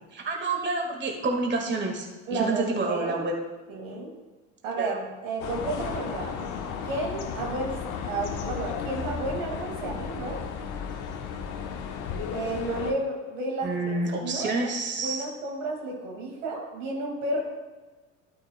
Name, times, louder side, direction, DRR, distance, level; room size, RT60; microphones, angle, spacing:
voice 1, 0.1-2.1 2.3-3.3 4.8-5.0 13.6-15.2, right 3 dB, 30° right, 1 dB, 1.8 m, -28 dB
voice 2, 2.3-3.2 3.7-4.1 4.6-6.5 6.9-7.8 8.1-10.4 12.3-14.5 15.0-17.4, right 2 dB, 80° right, 0 dB, 2.1 m, -32 dB
sound 1, 5.4-12.9, left 6 dB, 55° left, 1.3 m, -34 dB
12.5 x 9.2 x 2.2 m, 1.3 s
hypercardioid pair, 70°, 37 cm